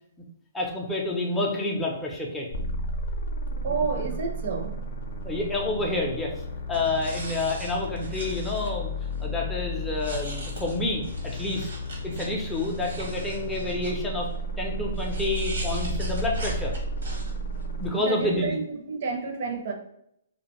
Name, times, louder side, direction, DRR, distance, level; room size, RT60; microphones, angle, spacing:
voice 1, 0.5-2.5 3.5-4.0 5.2-6.3 6.7-8.9 9.2-11.0 11.3-11.7 12.0-14.3 14.6-16.7 17.8-18.6, left 2 dB, 5° left, -3 dB, 0.5 m, -29 dB
sound 1, 2.5-17.9, equal, 65° left, 0.5 m, -33 dB
voice 2, 3.6-4.8 5.0-5.2 18.0-18.6 18.9-19.7, right 4 dB, 55° right, 3 dB, 0.6 m, -30 dB
sound 2, 6.7-8.7 9.2-9.3 9.9-13.9 14.9-17.6, right 2 dB, 85° right, 0.9 m, -40 dB
2.4 x 2.1 x 2.9 m, 0.74 s
hypercardioid pair, 150°, 0 cm